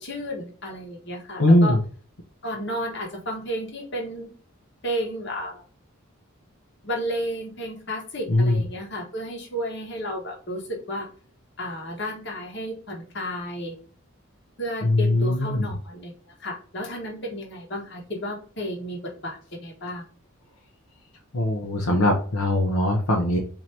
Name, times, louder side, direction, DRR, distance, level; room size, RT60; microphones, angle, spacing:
voice 1, 0.0-1.8 2.4-4.3 4.8-5.6 6.8-11.1 11.6-13.8 14.6-16.1 16.4-20.1, equal, 55° left, 0 dB, 1.2 m, -32 dB
voice 2, 1.4-1.8 8.3-8.6 14.8-15.7 21.3-23.4, left 1 dB, 80° left, 0 dB, 0.8 m, -21 dB
4.3 x 2.8 x 3.1 m, 0.44 s
head